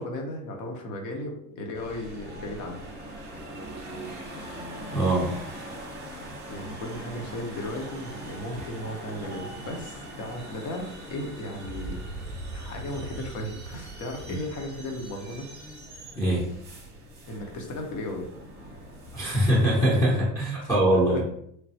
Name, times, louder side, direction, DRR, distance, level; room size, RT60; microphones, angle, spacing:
voice 1, 0.0-2.8 6.2-15.5 17.3-18.3 20.6-21.2, left 1 dB, 45° left, 2 dB, 0.8 m, -36 dB
sound 1, 1.7-19.5, right 1 dB, 25° right, 1.0 m, -42 dB
voice 2, 4.9-5.3 16.2-16.5 19.1-21.2, right 1 dB, 5° left, -6 dB, 0.8 m, -22 dB
sound 2, 11.6-15.9, right 2 dB, 80° left, 1.0 m, -40 dB
3.2 x 2.2 x 2.7 m, 0.71 s
supercardioid pair, 115°, 43 cm